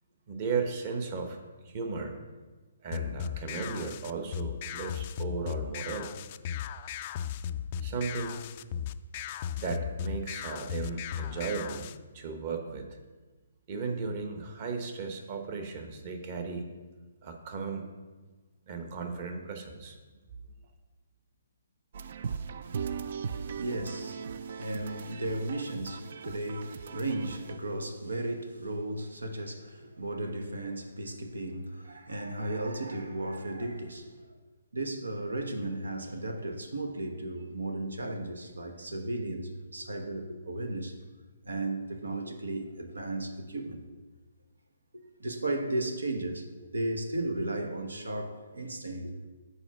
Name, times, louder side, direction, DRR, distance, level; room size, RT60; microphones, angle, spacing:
voice 1, 0.3-1.4 1.6-2.1 2.8-6.1 7.8-8.4 9.6-11.9 12.1-13.0 13.7-16.7 17.2-17.9 18.7-20.0, right 4 dB, 40° right, 1.1 m, -35 dB
sound 1, 2.9-12.0, left 9 dB, 40° left, 0.3 m, -36 dB
sound 2, 21.9-27.6, right 6 dB, 55° right, 0.3 m, -39 dB
voice 2, 23.4-34.1 34.7-41.0 41.4-43.8 44.9-49.3, right 2 dB, 90° right, 1.0 m, -35 dB
6.9 x 4.6 x 5.9 m
hypercardioid pair, 145°, 0 cm